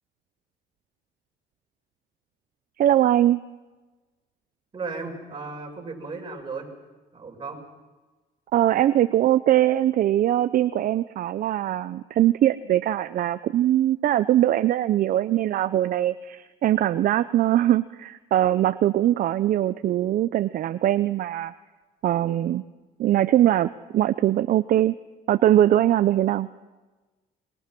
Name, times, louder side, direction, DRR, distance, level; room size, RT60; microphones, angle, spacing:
voice 1, 2.8-3.4 8.5-21.5 22.0-22.6 23.0-24.9 25.3-26.5, right 12 dB, 55° right, 13 dB, 0.6 m, -21 dB
voice 2, 4.7-6.7 7.1-7.6, right 4 dB, 30° right, 1 dB, 6.0 m, -35 dB
26.5 x 21.5 x 6.0 m, 1.2 s
cardioid pair, 110°, 17 cm